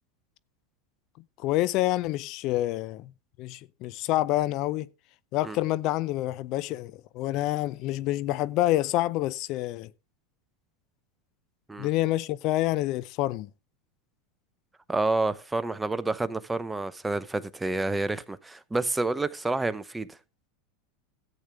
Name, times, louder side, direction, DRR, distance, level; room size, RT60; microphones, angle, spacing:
voice 1, 1.4-3.1 3.4-4.9 5.3-9.9 11.8-13.5, left 16 dB, 50° left, 0.5 m, -27 dB
voice 2, 14.9-20.2, right 2 dB, 10° right, 0.8 m, -29 dB
13.5 x 8.3 x 3.5 m
hypercardioid pair, 100°, 0 cm